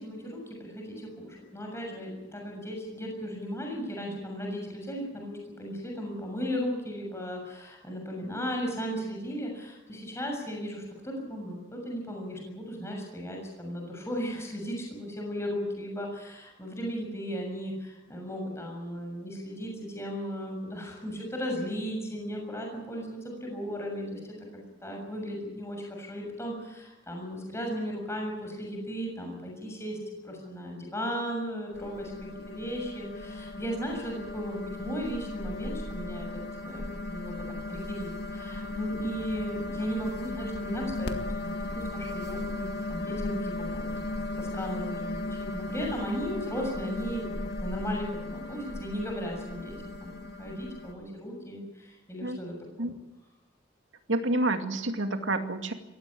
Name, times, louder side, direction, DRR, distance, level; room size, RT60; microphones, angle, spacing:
voice 1, 0.0-24.3 24.8-30.0 30.2-32.1 32.5-36.8 37.1-37.4 37.7-41.1 41.4-43.9 44.4-47.3 47.6-52.9, equal, 15° left, 1 dB, 6.9 m, -36 dB
sound 1, 31.7-50.9, left 2 dB, 55° left, 2.0 m, -36 dB
voice 2, 54.1-55.7, right 2 dB, 90° right, 5 dB, 2.4 m, -28 dB
22.0 x 17.0 x 8.7 m, 1.0 s
head